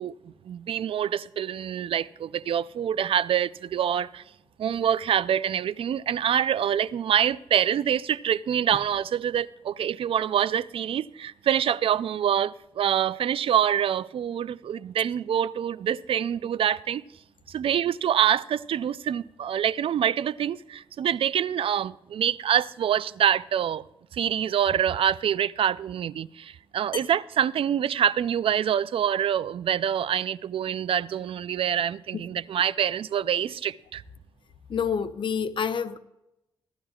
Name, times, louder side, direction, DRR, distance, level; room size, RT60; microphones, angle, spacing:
voice 1, 0.0-4.2 4.6-17.0 17.5-23.8 24.1-34.0, right 9 dB, 70° right, 0.4 m, -26 dB
voice 2, 34.7-36.0, left 7 dB, 60° left, 0.8 m, -28 dB
16.0 x 12.0 x 2.3 m
cardioid pair, 100°, 10 cm